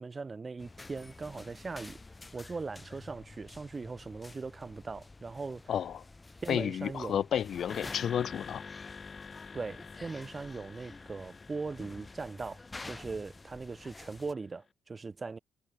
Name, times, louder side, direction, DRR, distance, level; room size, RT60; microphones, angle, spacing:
voice 1, 0.0-2.0 2.3-5.7 6.4-7.2 9.5-15.4, right 4 dB, 35° right, 3.1 m, -40 dB
sound 1, 0.6-14.3, left 3 dB, 25° left, 3.6 m, -50 dB
voice 2, 5.7-6.0 6.5-8.6, left 9 dB, 70° left, 1.9 m, -31 dB
sound 2, 7.7-14.1, left 5 dB, 45° left, 5.7 m, -48 dB
cardioid pair, 70°, 0 cm